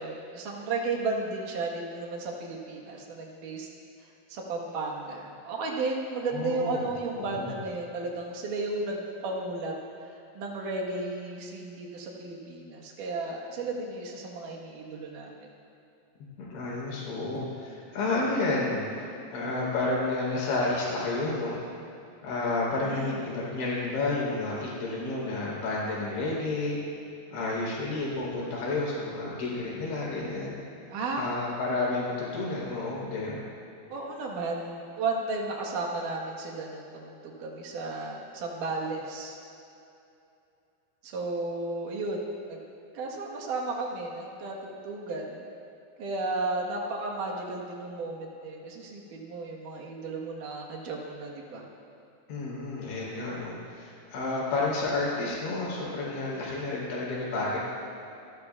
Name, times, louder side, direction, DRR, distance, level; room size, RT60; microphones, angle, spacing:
voice 1, 0.0-3.7 4.3-9.7 10.1-15.3 22.8-23.2 30.9-31.2 33.9-39.4 41.0-42.2 42.5-42.6 42.9-45.4 46.0-51.7, right 3 dB, 60° right, -1 dB, 2.5 m, -34 dB
voice 2, 6.3-6.9 7.2-7.5 16.2-21.6 22.2-26.8 27.3-30.5 31.2-33.4 52.3-57.6, left 2 dB, 80° left, -6 dB, 5.9 m, -31 dB
27.0 x 12.5 x 2.4 m, 2.7 s
omnidirectional pair, 5.0 m